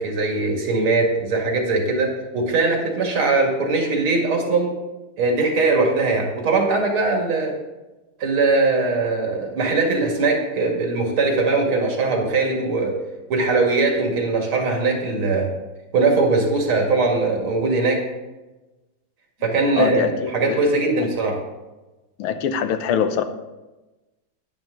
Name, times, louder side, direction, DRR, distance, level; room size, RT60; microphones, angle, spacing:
voice 1, 0.0-4.7 5.2-7.5 8.2-13.0 13.3-15.5 15.9-18.1 19.4-21.4, right 3 dB, 80° right, 1 dB, 2.9 m, -21 dB
voice 2, 19.8-20.6 22.2-23.2, left 7 dB, 85° left, 9 dB, 1.7 m, -23 dB
10.5 x 10.5 x 3.9 m, 1.1 s
omnidirectional pair, 2.3 m